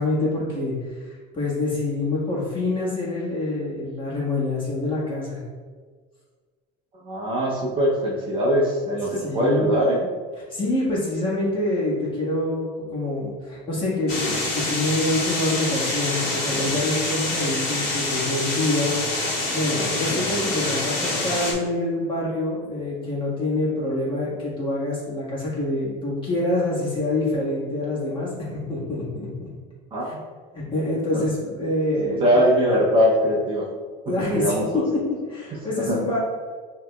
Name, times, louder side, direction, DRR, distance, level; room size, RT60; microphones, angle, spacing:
voice 1, 0.0-5.4 9.1-9.8 10.5-19.0 19.3-28.3 28.7-29.5 30.0-30.1 30.5-32.4 34.1-34.8 35.3-36.2, left 2 dB, 25° left, -6 dB, 1.5 m, -26 dB
voice 2, 7.0-10.1 29.9-30.2 31.1-31.2 32.0-33.7 34.1-34.8 35.8-36.0, equal, 25° right, -4 dB, 0.7 m, -21 dB
sound 1, 14.1-21.5, left 2 dB, 60° left, 1.4 m, -26 dB
5.9 x 2.9 x 2.3 m, 1.6 s
supercardioid pair, 130°, 20 cm